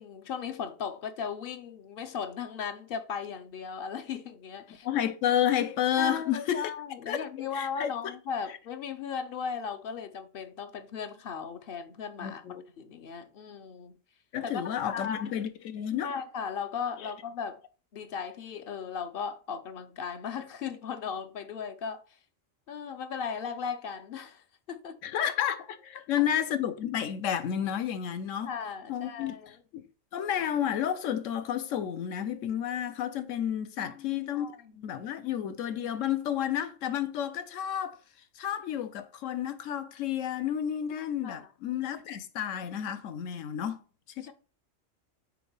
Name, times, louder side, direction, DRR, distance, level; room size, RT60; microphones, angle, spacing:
voice 1, 0.0-4.9 6.0-14.0 14.4-15.3 16.0-17.6 17.9-22.0 22.7-25.0 25.9-26.0 28.5-29.6 33.8-34.8 41.2-41.5 44.2-44.3, left 6 dB, 55° left, 0.7 m, -37 dB
voice 2, 4.8-6.7 7.1-7.9 12.2-12.6 14.3-16.1 25.0-28.5 28.9-29.4 29.7-29.8 30.1-34.5 34.7-38.0 38.4-43.8 44.2-44.3, left 10 dB, 80° left, 1.0 m, -31 dB
4.6 x 3.9 x 5.3 m
omnidirectional pair, 1.3 m